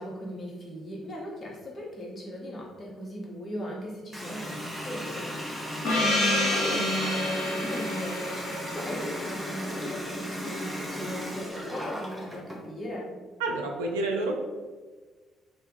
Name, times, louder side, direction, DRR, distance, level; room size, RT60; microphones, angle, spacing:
voice 1, 0.0-5.5 5.8-8.5 8.7-13.1, equal, 35° left, -3 dB, 1.0 m, -38 dB
Water tap faucet, 4.1-12.6, equal, ahead, 0.7 m, -36 dB
Gong, 5.8-10.2, left 1 dB, 65° left, 0.9 m, -29 dB
voice 2, 13.4-14.3, right 2 dB, 70° right, 2 dB, 0.4 m, -28 dB
2.7 x 2.5 x 4.0 m, 1.4 s
figure-of-eight pair, 45°, 0 cm